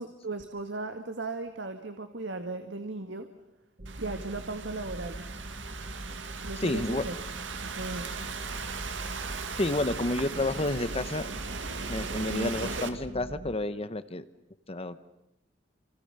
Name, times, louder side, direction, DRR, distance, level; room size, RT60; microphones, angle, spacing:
voice 1, 0.0-3.3 4.0-5.3 6.4-7.1 7.6-8.1 12.3-12.7, right 2 dB, 70° right, 7 dB, 1.9 m, -36 dB
sound 1, 3.8-13.5, right 1 dB, 45° right, 1.3 m, -42 dB
Thunderstorm / Rain, 3.9-12.9, right 5 dB, 90° right, 2.3 m, -38 dB
voice 2, 6.6-7.0 9.6-11.3 11.9-14.2 14.7-15.0, left 2 dB, 35° left, 13 dB, 1.0 m, -30 dB
29.5 x 26.5 x 6.8 m, 0.87 s
head